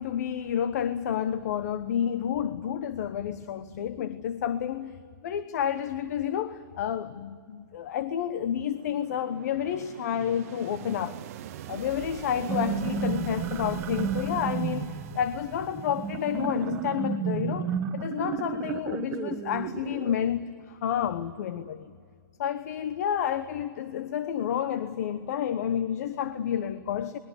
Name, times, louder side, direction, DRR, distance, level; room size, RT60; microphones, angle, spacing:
voice 1, 0.0-11.2 11.7-21.9 22.4-27.2, left 9 dB, 50° left, 1.0 m, -30 dB
sound 1, 8.0-16.9, right 12 dB, 45° right, 0.8 m, -43 dB
sound 2, 12.3-20.1, right 7 dB, 20° right, 1.3 m, -32 dB
28.0 x 21.5 x 8.2 m
hypercardioid pair, 140°, 11 cm